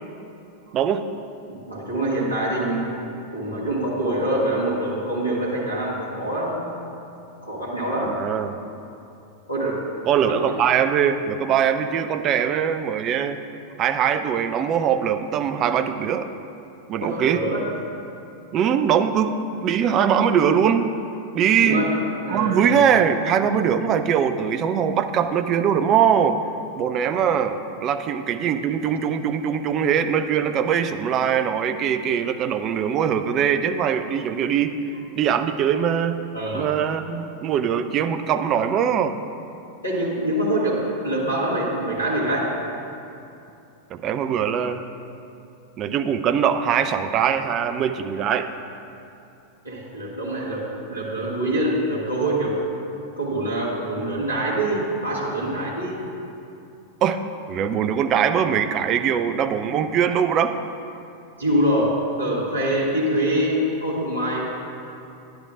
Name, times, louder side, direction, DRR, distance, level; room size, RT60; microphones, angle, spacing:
voice 1, 0.7-1.0 8.0-8.5 10.1-13.4 13.8-16.3 16.9-17.4 18.5-20.9 21.3-21.9 22.3-26.4 26.8-34.7 35.2-36.2 36.5-39.2 43.9-44.9 45.8-48.5 57.0-57.2 57.5-60.6, right 8 dB, 35° right, 9 dB, 0.4 m, -22 dB
voice 2, 1.5-2.9 3.3-6.6 7.4-8.2 9.5-9.8 10.2-10.3 17.0-17.7 21.6-21.9 22.2-22.6 36.3-36.7 39.8-42.5 49.6-52.6 53.2-56.0 61.4-64.5, right 1 dB, 90° left, -6 dB, 1.6 m, -25 dB
10.5 x 10.5 x 2.4 m, 2.7 s
figure-of-eight pair, 90°, 0 cm